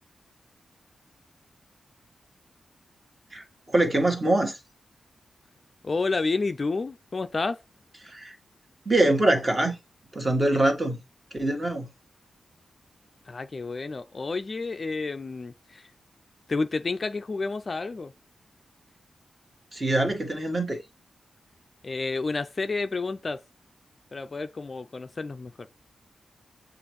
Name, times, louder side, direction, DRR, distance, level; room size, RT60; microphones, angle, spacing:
voice 1, 3.3-4.6 8.0-8.3 8.8-9.7 10.1-11.0 11.3-11.9 19.7-20.8, right 1 dB, 25° right, 1.3 m, -24 dB
voice 2, 5.8-7.6 13.3-15.9 16.5-18.1 21.8-23.4 24.1-25.7, left 3 dB, 40° left, 0.3 m, -30 dB
6.8 x 2.5 x 3.1 m
wide cardioid pair, 100°, 0 cm